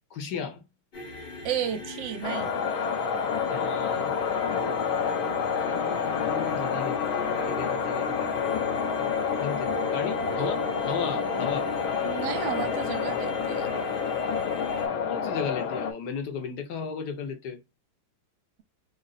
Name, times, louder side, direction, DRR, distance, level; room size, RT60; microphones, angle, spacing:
voice 1, 0.1-0.6 3.5-4.1 5.3-9.1 9.4-11.7 15.1-17.6, left 6 dB, 60° left, 1.4 m, -35 dB
sound 1, 0.9-14.9, left 1 dB, 40° left, 0.9 m, -39 dB
voice 2, 1.4-2.6 12.0-13.8, right 9 dB, 70° right, 1.3 m, -32 dB
sound 2, 2.2-15.9, left 6 dB, 80° left, 1.6 m, -28 dB
3.9 x 2.1 x 3.9 m
omnidirectional pair, 2.2 m